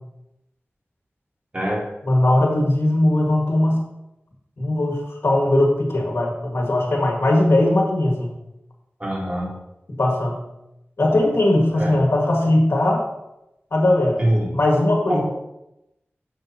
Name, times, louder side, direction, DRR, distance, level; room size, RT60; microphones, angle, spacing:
voice 1, 1.5-1.9 9.0-9.5 11.7-12.0 14.2-14.5 15.1-15.2, equal, 30° right, -4 dB, 2.7 m, -23 dB
voice 2, 2.1-3.8 4.6-8.3 10.0-10.4 11.0-13.0 13.7-14.2 14.5-15.2, left 1 dB, 70° left, 0 dB, 1.7 m, -19 dB
8.8 x 7.0 x 2.8 m, 0.88 s
wide cardioid pair, 60°, 4 cm